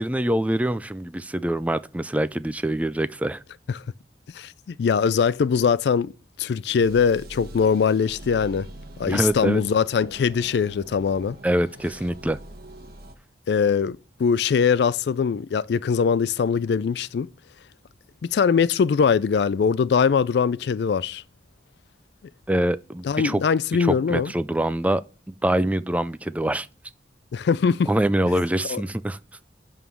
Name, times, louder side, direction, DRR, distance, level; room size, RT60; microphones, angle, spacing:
voice 1, 0.0-3.4 9.1-9.6 11.4-12.4 22.5-23.4 23.8-25.0 25.4-26.7 27.9-29.2, right 1 dB, 10° right, 0.3 m, -24 dB
voice 2, 4.3-6.1 6.4-8.7 9.0-11.4 13.5-17.3 18.2-21.2 23.0-24.3 27.3-27.9 28.7-28.8, left 6 dB, 70° left, 0.3 m, -22 dB
sound 1, 6.8-13.2, right 1 dB, 55° right, 1.2 m, -43 dB
11.0 x 3.7 x 7.0 m
head